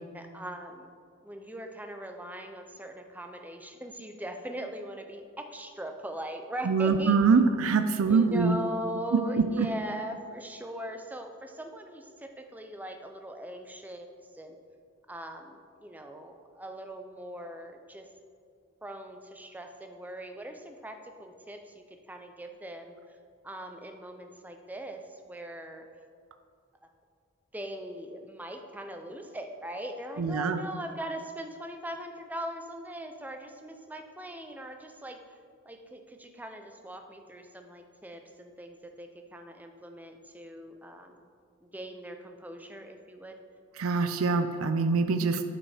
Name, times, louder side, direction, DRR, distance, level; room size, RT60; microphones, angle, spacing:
voice 1, 0.1-0.9 1.2-7.2 8.1-14.6 15.1-18.1 18.8-23.0 23.4-25.9 27.5-35.2 35.7-41.2 41.6-43.4, right 1 dB, 10° right, 5 dB, 0.5 m, -40 dB
voice 2, 6.6-8.6 9.1-9.7 30.2-30.6 43.8-45.4, right 4 dB, 75° right, 8 dB, 0.4 m, -24 dB
8.6 x 5.1 x 4.9 m, 2.2 s
head